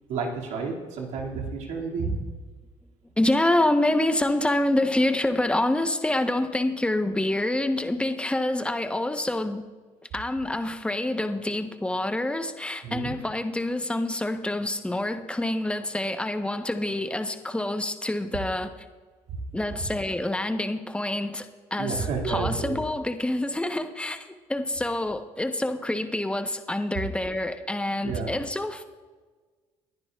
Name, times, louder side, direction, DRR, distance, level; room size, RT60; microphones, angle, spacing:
voice 1, 0.1-2.2 12.8-13.2 19.3-19.4 19.8-19.9 21.8-22.8 28.0-28.4, right 4 dB, 75° right, -1 dB, 2.4 m, -30 dB
voice 2, 3.2-9.6 10.1-18.7 19.5-28.8, left 1 dB, 10° left, 8 dB, 1.0 m, -27 dB
20.0 x 10.5 x 2.4 m, 1.4 s
supercardioid pair, 75°, 12 cm